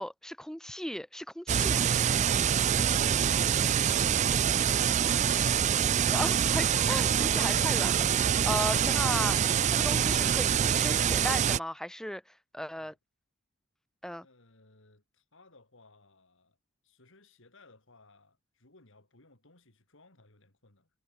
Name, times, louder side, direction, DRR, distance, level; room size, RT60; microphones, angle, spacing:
voice 1, 0.0-1.9 6.1-12.2 12.5-12.9 14.0-14.3, equal, 5° left, 1.0 m, -36 dB
sound 1, 1.5-11.6, right 8 dB, 35° right, 0.3 m, -25 dB
voice 2, 14.2-16.6 16.8-20.9, left 2 dB, 65° left, 3.6 m, -60 dB
head